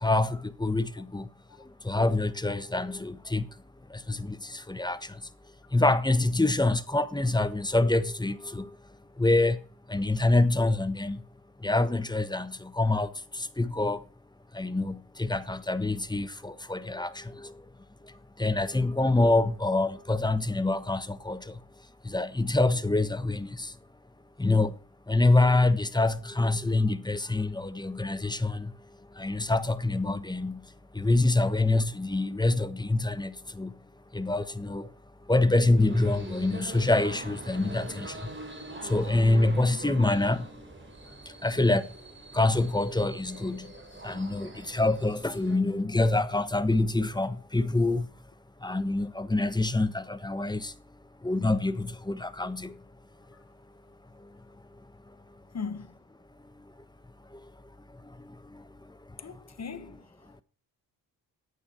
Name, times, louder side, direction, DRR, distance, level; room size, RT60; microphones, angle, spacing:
voice 1, 0.0-1.3 1.8-3.5 3.9-5.2 5.7-8.7 9.2-9.6 9.9-11.2 11.6-14.0 14.5-17.5 18.4-21.6 22.0-23.7 24.4-24.7 25.1-28.7 29.2-30.6 30.9-33.7 34.1-34.9 35.3-38.2 38.8-40.5 41.4-41.9 42.3-43.7 44.0-48.1 48.6-50.7 51.2-52.8 58.5-58.6, left 2 dB, 10° left, 1.2 m, -26 dB
sound 1, 35.8-45.6, right 2 dB, 25° right, 3.5 m, -44 dB
voice 2, 55.5-55.9 59.2-60.0, left 5 dB, 40° left, 1.4 m, -38 dB
11.5 x 8.9 x 4.5 m
supercardioid pair, 50°, 42 cm